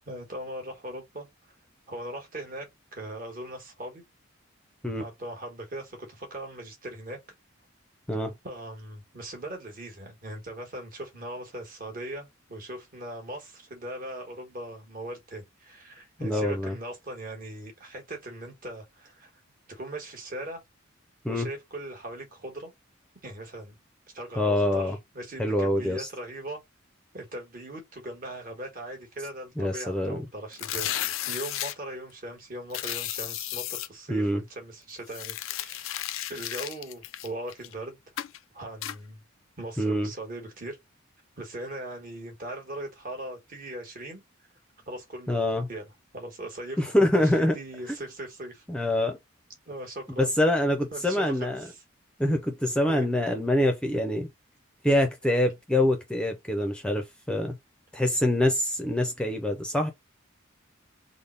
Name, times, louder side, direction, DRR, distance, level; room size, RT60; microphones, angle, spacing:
voice 1, 0.1-1.3 1.9-4.0 5.0-7.2 8.4-19.3 19.7-20.6 21.3-22.7 23.2-23.8 24.1-26.6 27.1-36.0 36.3-38.0 38.5-39.2 39.6-40.8 41.4-44.2 44.9-46.8 47.1-48.6 49.7-50.4 50.9-51.7 52.9-53.1, right 1 dB, 45° right, 1.3 m, -39 dB
voice 2, 16.2-16.8 21.2-21.5 24.4-25.0 25.4-26.1 29.6-30.2 34.1-34.4 39.8-40.1 45.3-45.7 46.8-47.6 48.7-49.2 50.2-51.7 52.2-54.3 54.8-57.5 57.9-59.9, left 1 dB, 5° left, 0.5 m, -25 dB
sound 1, 30.5-31.7 32.7-33.9 35.1-37.7 38.2-38.4 38.8-39.0, left 13 dB, 70° left, 0.4 m, -33 dB
3.5 x 2.1 x 3.8 m
head